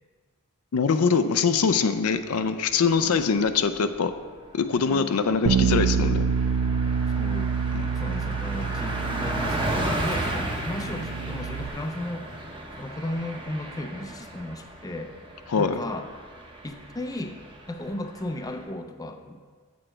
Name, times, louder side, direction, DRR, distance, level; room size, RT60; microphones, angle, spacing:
voice 1, 0.7-4.1 4.5-6.4 7.7-7.9 15.5-15.8, left 5 dB, 85° left, 10 dB, 0.5 m, -23 dB
Car passing by, 3.0-3.6 3.9-4.1 4.4-18.6, right 1 dB, 25° right, 0.9 m, -35 dB
voice 2, 4.8-5.2 7.2-12.3 12.8-15.2 15.5-16.1 16.6-17.4 17.7-19.4, left 1 dB, 15° left, 6 dB, 0.4 m, -35 dB
Bass guitar, 5.4-11.7, right 6 dB, 75° right, 0.4 m, -27 dB
7.7 x 6.2 x 4.5 m, 1.5 s
head